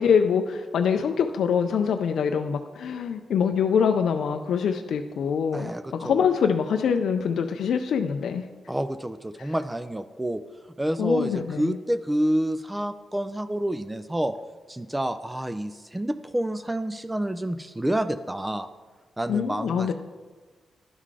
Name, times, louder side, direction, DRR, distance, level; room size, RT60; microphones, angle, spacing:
voice 1, 0.0-8.4 9.4-9.5 11.0-11.8 19.3-19.9, left 7 dB, 85° left, 6 dB, 0.3 m, -24 dB
voice 2, 5.5-6.2 8.7-10.4 10.8-14.3 14.7-18.7 19.2-19.9, right 1 dB, 10° right, 11 dB, 0.3 m, -28 dB
11.0 x 3.8 x 4.8 m, 1.4 s
cardioid pair, 85°, 0 cm